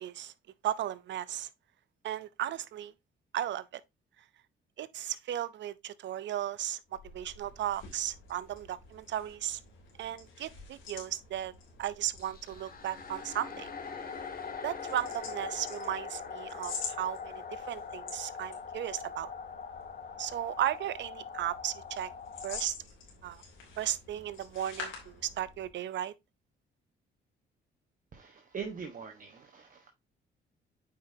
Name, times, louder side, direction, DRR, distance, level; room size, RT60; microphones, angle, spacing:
voice 1, 0.0-0.3 0.6-1.5 2.0-2.9 3.3-3.8 4.8-6.8 7.1-9.6 10.0-11.5 11.8-13.7 14.6-19.3 20.2-22.1 22.4-22.7 23.2-23.4 23.8-26.1, right 12 dB, 65° right, 0.6 m, -35 dB
sound 1, 6.8-25.8, left 5 dB, 85° left, 3.2 m, -48 dB
sound 2, 12.2-22.7, left 6 dB, 45° left, 1.8 m, -42 dB
voice 2, 28.1-29.9, right 6 dB, 40° right, 1.3 m, -42 dB
8.6 x 5.2 x 2.7 m
cardioid pair, 90°, 20 cm